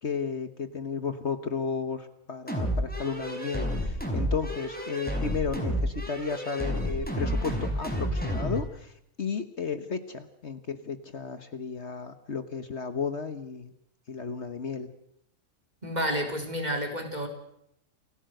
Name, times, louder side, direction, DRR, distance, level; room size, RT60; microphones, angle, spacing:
voice 1, 0.0-13.7 14.1-14.9, left 5 dB, 55° left, 10 dB, 1.6 m, -33 dB
sound 1, 2.5-8.7, equal, 5° left, 5.1 m, -30 dB
voice 2, 15.8-17.3, equal, 30° right, 3 dB, 4.2 m, -30 dB
28.5 x 16.5 x 7.9 m, 0.76 s
omnidirectional pair, 1.4 m